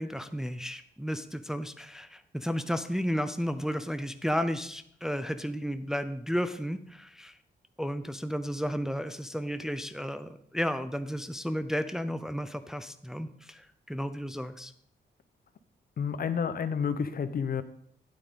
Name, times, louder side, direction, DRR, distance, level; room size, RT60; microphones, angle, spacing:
voice 1, 0.0-7.4 7.8-14.7, equal, 5° right, 10 dB, 0.5 m, -33 dB
voice 2, 16.0-17.6, left 6 dB, 55° left, 12 dB, 0.7 m, -30 dB
9.5 x 8.5 x 3.7 m, 0.68 s
cardioid pair, 85°, 18 cm